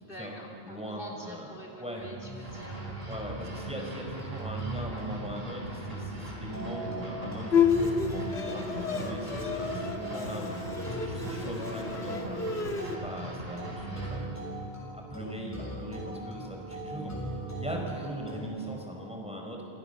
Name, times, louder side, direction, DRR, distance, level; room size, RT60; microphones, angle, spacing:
voice 1, 0.0-3.2 15.6-15.8, equal, 55° left, 0 dB, 3.6 m, -46 dB
voice 2, 0.6-1.5 1.8-2.0 3.0-10.6 10.9-12.4 12.8-14.4 14.9-19.6, right 1 dB, 5° right, 0 dB, 4.7 m, -40 dB
sound 1, 2.0-18.4, right 1 dB, 15° left, 7.0 m, -39 dB
sound 2, 2.4-14.2, right 1 dB, 65° right, 4.6 m, -42 dB
Bowed string instrument, 7.5-13.0, left 6 dB, 80° left, 2.3 m, -30 dB
28.5 x 27.0 x 6.9 m, 2.8 s
omnidirectional pair, 1.1 m